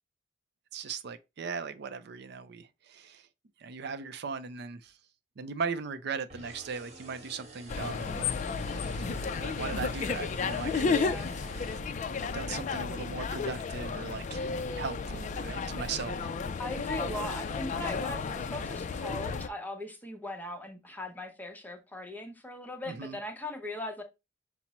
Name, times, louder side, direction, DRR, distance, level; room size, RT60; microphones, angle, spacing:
voice 1, 0.7-3.2 3.6-4.9 5.4-8.3 8.7-9.1 9.4-11.0 12.3-14.5 14.8-16.3 22.9-23.2, right 5 dB, 60° right, 0.4 m, -38 dB
sound 1, 6.3-12.5, right 2 dB, 35° right, 1.1 m, -50 dB
sound 2, 7.7-19.5, left 5 dB, 40° left, 0.3 m, -33 dB
voice 2, 10.8-11.3 16.6-24.0, left 1 dB, 10° left, 0.7 m, -39 dB
5.8 x 2.0 x 4.1 m
head